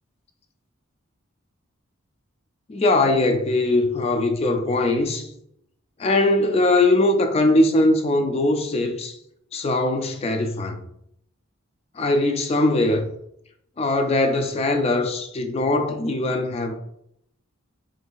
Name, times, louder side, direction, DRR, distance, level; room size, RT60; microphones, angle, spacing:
voice 1, 2.7-5.3 6.0-9.2 9.5-10.8 12.0-13.1 13.8-16.7, left 2 dB, 30° left, 0.3 m, -21 dB
4.5 x 2.6 x 2.3 m
head